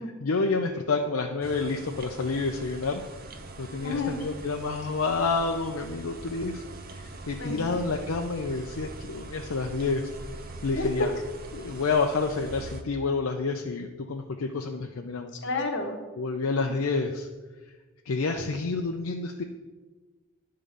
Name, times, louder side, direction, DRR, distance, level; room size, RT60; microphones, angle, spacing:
voice 1, 0.2-3.0 3.6-6.6 6.9-10.1 10.6-11.1 11.5-15.3 16.2-17.3 18.1-19.4, left 4 dB, 70° left, 3 dB, 0.5 m, -29 dB
sound 1, 1.4-12.8, right 2 dB, 40° right, 0.6 m, -42 dB
voice 2, 3.8-4.2 7.4-7.8 10.7-11.1 15.4-16.0 16.6-16.7, left 2 dB, 55° left, 3 dB, 1.2 m, -30 dB
10.0 x 3.8 x 6.7 m, 1.3 s
head